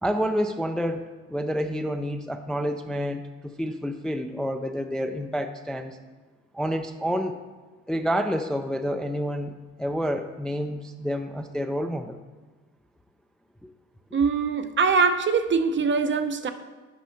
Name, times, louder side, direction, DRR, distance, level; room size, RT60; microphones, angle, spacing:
voice 1, 0.0-6.0 6.5-7.3 7.9-12.2 13.6-13.7, equal, ahead, 6 dB, 0.4 m, -29 dB
voice 2, 14.1-16.5, right 5 dB, 40° right, 9 dB, 0.6 m, -23 dB
6.1 x 5.4 x 5.7 m, 1.3 s
cardioid pair, 90°, 30 cm